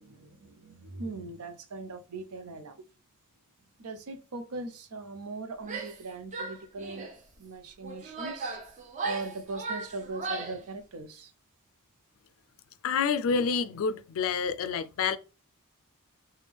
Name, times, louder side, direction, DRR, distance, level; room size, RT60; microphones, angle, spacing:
voice 1, 0.0-2.8 3.8-7.1 7.4-8.6 9.0-11.3, right 3 dB, 80° right, 0.6 m, -40 dB
Female speech woman speaking / Yell, 5.6-6.0 6.3-7.2 7.8-10.6, right 3 dB, 35° right, 0.6 m, -37 dB
voice 2, 12.8-15.2, left 5 dB, 65° left, 0.3 m, -28 dB
3.4 x 2.2 x 3.4 m
head